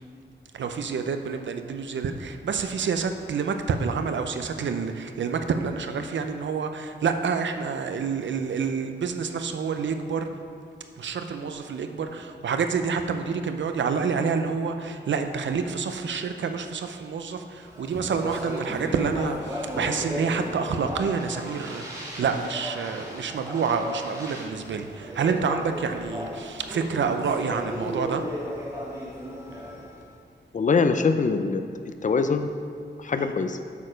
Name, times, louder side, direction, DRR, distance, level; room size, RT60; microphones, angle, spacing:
voice 1, 0.5-10.3 11.0-28.2 33.2-33.3, right 5 dB, 90° right, 7 dB, 0.6 m, -28 dB
Speech, 17.6-30.0, equal, 20° right, 2.3 m, -35 dB
voice 2, 30.5-31.6 32.0-32.5 33.0-33.6, left 4 dB, 45° left, 8 dB, 0.5 m, -23 dB
8.3 x 6.7 x 5.1 m, 2.3 s
wide cardioid pair, 140°, 19 cm